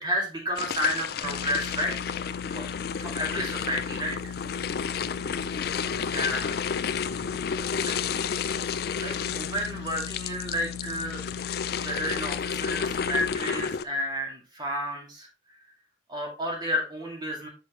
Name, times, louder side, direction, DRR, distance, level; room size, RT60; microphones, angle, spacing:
voice 1, 0.0-2.0 2.5-2.7 3.0-4.2 6.1-6.8 7.8-8.0 8.9-11.2 11.8-15.3 16.1-17.5, equal, 25° right, -1 dB, 2.1 m, -31 dB
sound 1, 0.6-13.8, left 7 dB, 55° left, 0.4 m, -31 dB
sound 2, 1.2-13.3, left 6 dB, 75° left, 0.8 m, -39 dB
6.1 x 5.9 x 3.1 m, 0.35 s
head